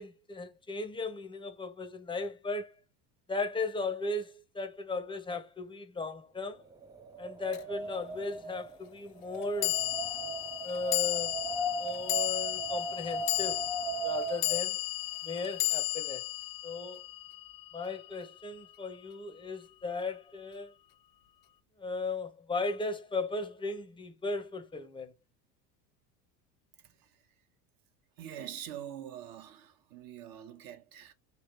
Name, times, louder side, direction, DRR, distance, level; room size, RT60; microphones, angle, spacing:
voice 1, 0.0-2.7 3.3-6.6 7.2-9.8 10.6-11.4 11.8-13.6 14.0-14.8 15.2-16.3 16.6-17.0 17.7-20.7 21.8-25.1, left 3 dB, 10° left, 0.8 m, -36 dB
Wind, 6.7-14.6, right 3 dB, 10° right, 0.3 m, -38 dB
sound 1, 7.5-7.6 9.6-18.0, left 18 dB, 60° left, 0.7 m, -34 dB
voice 2, 26.8-27.2 28.2-31.1, right 10 dB, 45° right, 1.1 m, -45 dB
3.3 x 2.8 x 4.2 m
hypercardioid pair, 95°, 48 cm